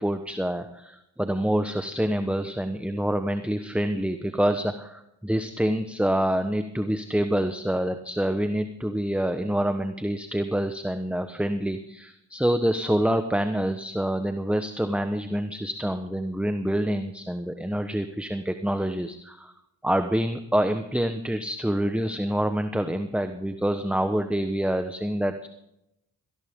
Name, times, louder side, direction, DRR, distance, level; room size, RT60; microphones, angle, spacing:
voice 1, 0.0-19.5 19.8-25.5, equal, 5° right, 8 dB, 1.2 m, -26 dB
18.5 x 15.0 x 3.7 m, 0.83 s
cardioid pair, 45°, 45 cm